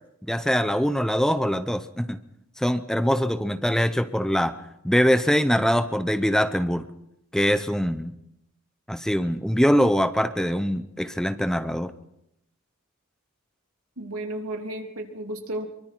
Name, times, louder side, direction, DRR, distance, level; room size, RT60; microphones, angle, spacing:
voice 1, 0.3-2.2 2.6-4.6 4.8-6.9 7.3-8.1 8.9-11.9, equal, 5° left, 10 dB, 0.7 m, -23 dB
voice 2, 14.0-15.7, right 1 dB, 75° right, 2 dB, 3.2 m, -33 dB
25.0 x 23.5 x 4.6 m, 0.81 s
head